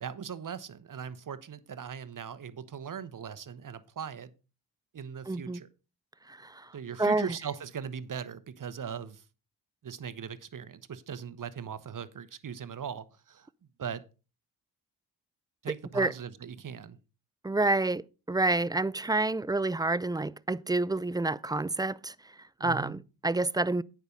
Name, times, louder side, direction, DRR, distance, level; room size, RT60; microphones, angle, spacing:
voice 1, 0.0-4.3 4.9-5.7 6.7-9.2 9.8-13.5 13.8-14.0 15.6-17.0 22.6-23.0, right 7 dB, 45° right, 1.0 m, -39 dB
voice 2, 5.3-5.6 6.3-7.4 15.7-16.1 17.4-23.8, right 2 dB, 10° right, 0.4 m, -29 dB
9.3 x 5.9 x 5.2 m
supercardioid pair, 45°, 43 cm